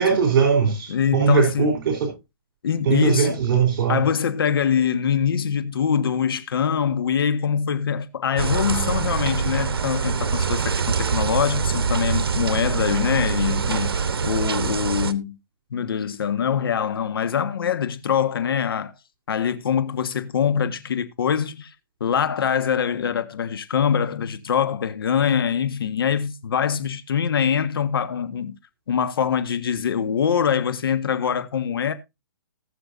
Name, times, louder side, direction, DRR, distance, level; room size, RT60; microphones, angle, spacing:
voice 1, 0.0-2.1 2.9-4.0, right 6 dB, 60° right, 3.8 m, -20 dB
voice 2, 0.9-1.7 2.6-3.4 3.9-15.4 15.7-18.9 19.3-21.7 22.0-28.5 28.9-31.9, left 7 dB, 75° left, 1.5 m, -23 dB
sound 1, 8.4-15.1, right 5 dB, 85° right, 1.1 m, -24 dB
19.5 x 6.8 x 2.7 m
hypercardioid pair, 150°, 12 cm